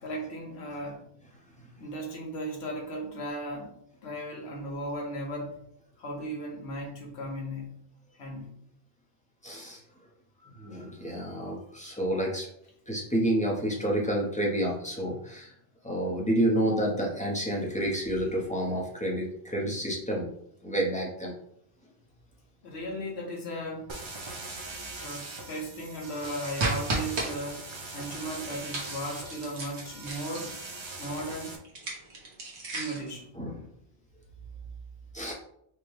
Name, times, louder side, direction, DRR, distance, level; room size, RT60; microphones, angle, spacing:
voice 1, 0.0-1.0 1.8-3.7 4.0-5.5 6.0-7.7 8.1-8.5 22.6-23.9 25.0-27.6 27.9-30.5 31.0-31.5 32.7-33.3, equal, 65° left, 0 dB, 1.2 m, -36 dB
voice 2, 9.4-9.8 10.4-12.5 12.9-15.5 15.8-20.3 20.6-21.3 33.4-33.5 35.1-35.3, right 1 dB, 10° left, -3 dB, 0.7 m, -29 dB
sound 1, 23.9-31.6, right 3 dB, 35° right, 0.4 m, -41 dB
sound 2, 26.6-27.3 28.7-30.6 31.7-33.1, right 2 dB, 70° right, 1.3 m, -33 dB
4.9 x 2.2 x 3.2 m, 0.72 s
omnidirectional pair, 1.2 m